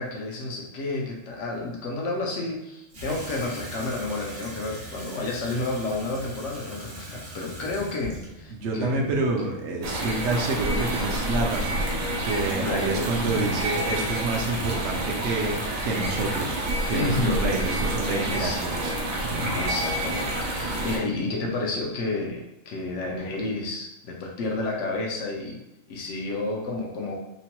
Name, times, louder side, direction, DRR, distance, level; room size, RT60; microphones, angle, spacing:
voice 1, 0.0-9.1 12.6-13.1 16.9-18.9 19.5-25.6 25.9-27.2, left 2 dB, 70° left, -1 dB, 0.9 m, -31 dB
Water tap faucet / Sink (filling or washing), 2.9-9.9, equal, 45° right, 0.7 m, -41 dB
voice 2, 8.5-11.8 12.2-15.5 15.8-16.6 16.9-18.9, right 3 dB, 70° right, 1 dB, 0.8 m, -28 dB
sound 1, 9.8-21.0, right 1 dB, 90° right, 1.1 m, -28 dB
3.0 x 2.1 x 2.8 m, 0.91 s
omnidirectional pair, 1.3 m